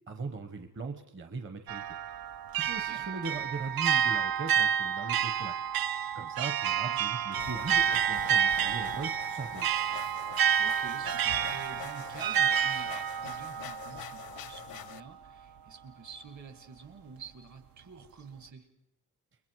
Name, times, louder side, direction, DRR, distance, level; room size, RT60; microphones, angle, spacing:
voice 1, 0.1-2.0 2.6-5.6 6.1-9.7, right 4 dB, 35° right, 7 dB, 1.0 m, -39 dB
sound 1, 1.7-14.6, right 9 dB, 80° right, 0.7 m, -29 dB
sound 2, 7.4-15.0, left 11 dB, 85° left, 0.7 m, -45 dB
voice 2, 10.6-18.7, right 5 dB, 55° right, 10 dB, 2.0 m, -48 dB
29.5 x 21.5 x 4.7 m, 0.83 s
wide cardioid pair, 175°, 35 cm